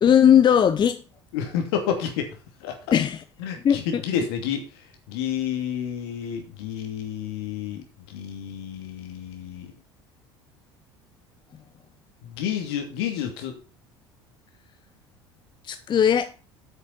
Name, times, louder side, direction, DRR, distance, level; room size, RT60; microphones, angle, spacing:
voice 1, 0.0-1.0 2.9-3.2 3.6-4.0 15.6-16.3, left 9 dB, 35° left, 0.7 m, -18 dB
voice 2, 1.3-2.3 2.6-2.8 3.4-4.7 5.1-9.7 12.2-13.6, left 8 dB, 70° left, 2.7 m, -30 dB
8.6 x 6.7 x 5.9 m
figure-of-eight pair, 65°, 14 cm